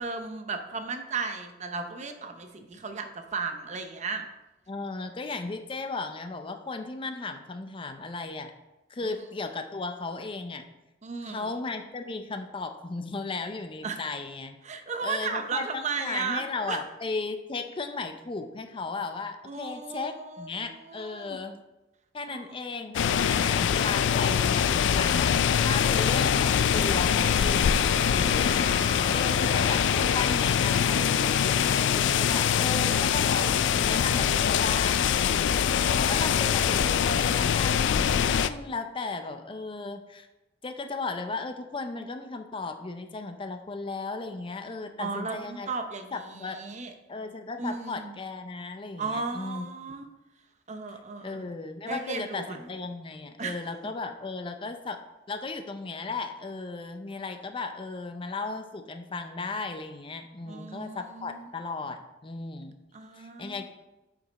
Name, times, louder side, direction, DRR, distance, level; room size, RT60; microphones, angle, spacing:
voice 1, 0.0-4.2 9.0-9.1 11.0-11.6 13.8-14.0 14.6-16.8 19.4-21.4 22.3-22.6 28.3-29.4 35.6-36.5 45.0-46.9 47.6-48.1 49.0-50.1 50.7-51.5 51.8-52.7 53.4-53.6 60.5-61.5 62.9-63.7, right 4 dB, 40° right, 6 dB, 0.7 m, -35 dB
voice 2, 4.7-8.5 8.9-10.6 11.3-14.6 15.0-21.6 22.1-28.6 29.1-40.3 40.6-45.7 46.1-46.6 47.1-49.7 51.2-55.0 55.3-62.7 63.2-63.7, left 3 dB, 30° left, 7 dB, 0.5 m, -36 dB
sound 1, 22.9-38.5, left 8 dB, 85° left, 0.3 m, -24 dB
sound 2, 27.2-36.7, right 2 dB, 85° right, 0.9 m, -45 dB
7.7 x 5.2 x 4.0 m, 1.0 s
head